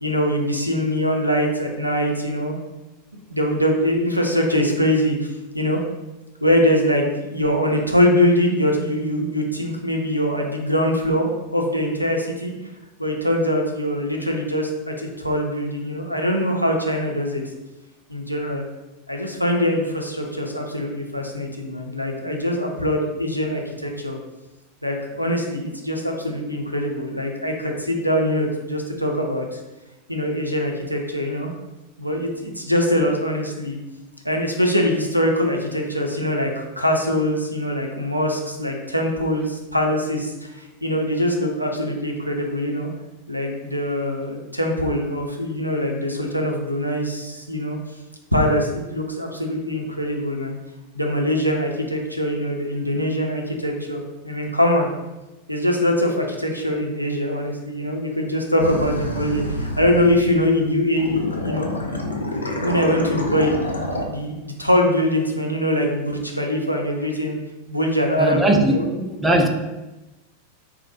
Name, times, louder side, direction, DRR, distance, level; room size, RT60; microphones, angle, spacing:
voice 1, 0.0-2.6 3.1-5.8 6.4-12.5 13.0-17.4 18.1-18.6 19.1-24.2 24.8-29.6 30.1-31.5 32.0-33.8 34.2-42.9 43.3-47.8 48.3-50.6 50.9-54.9 55.5-61.7 62.6-63.6 64.1-67.4 67.7-68.9, equal, 90° right, 0.4 m, -23 dB
sound 1, 58.6-60.6 61.0-64.1, left 1 dB, 75° left, 0.4 m, -27 dB
voice 2, 68.2-69.5, right 1 dB, 10° right, 0.3 m, -19 dB
3.8 x 2.0 x 2.9 m
figure-of-eight pair, 90°, 0 cm